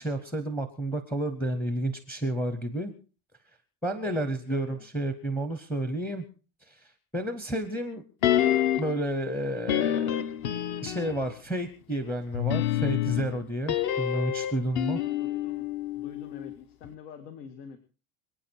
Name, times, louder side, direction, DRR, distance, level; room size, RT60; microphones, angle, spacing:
voice 1, 0.0-2.9 3.8-6.2 6.7-8.0 8.8-10.3 10.8-15.0, right 1 dB, 5° left, 9 dB, 0.6 m, -31 dB
voice 2, 4.0-4.9 15.0-15.7 15.9-17.8, left 7 dB, 85° left, 8 dB, 2.1 m, -45 dB
sound 1, 8.2-9.0 9.7-11.3 12.3-16.6 16.8-16.9, left 11 dB, 45° left, 0.8 m, -28 dB
27.0 x 9.2 x 4.4 m, 0.36 s
cardioid pair, 175°, 44 cm